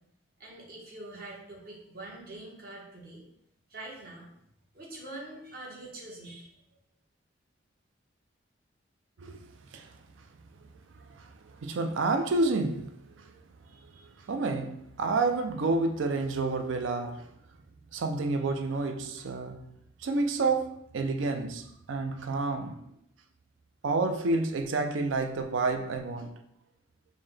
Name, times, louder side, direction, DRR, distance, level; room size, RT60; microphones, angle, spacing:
voice 1, 0.4-3.2 3.7-4.3 4.7-6.5, right 2 dB, 50° right, 1.1 m, -44 dB
voice 2, 11.1-13.3 13.7-17.3 17.9-19.7 20.0-22.9 23.8-26.3, right 3 dB, 75° right, 0.4 m, -30 dB
5.4 x 2.2 x 3.2 m
head